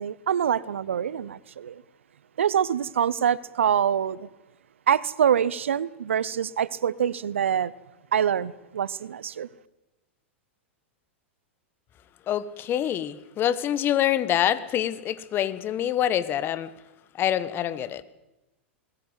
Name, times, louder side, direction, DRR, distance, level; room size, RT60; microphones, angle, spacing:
voice 1, 0.0-1.8 2.4-4.3 4.9-7.7 8.1-9.5, right 8 dB, 75° right, 0.8 m, -25 dB
voice 2, 12.3-16.7 17.2-18.0, left 11 dB, 35° left, 1.3 m, -26 dB
21.0 x 18.5 x 8.2 m
hypercardioid pair, 100°, 7 cm